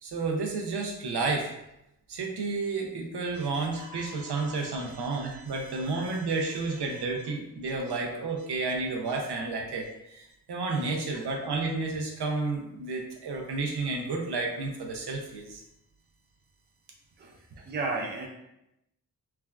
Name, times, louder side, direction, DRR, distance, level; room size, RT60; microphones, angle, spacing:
voice 1, 0.0-1.5 2.1-15.6, right 3 dB, 75° right, 0 dB, 0.6 m, -31 dB
voice 2, 3.3-3.7 4.0-4.2 4.9-5.6 6.1-6.2 17.2-17.4 17.7-18.3, right 3 dB, 25° right, -1 dB, 0.4 m, -36 dB
3.4 x 2.2 x 2.3 m, 0.86 s
wide cardioid pair, 100°, 40 cm